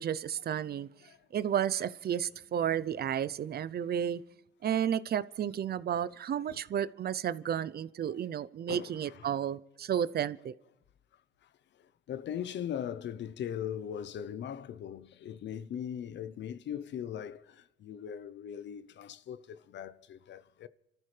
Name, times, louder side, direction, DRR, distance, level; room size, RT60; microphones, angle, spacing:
voice 1, 0.0-0.9 1.3-4.2 4.6-10.5, right 9 dB, 50° right, 0.6 m, -32 dB
voice 2, 8.7-9.3 12.1-20.7, left 9 dB, 65° left, 0.7 m, -40 dB
28.5 x 14.0 x 3.3 m
cardioid pair, 90°, 20 cm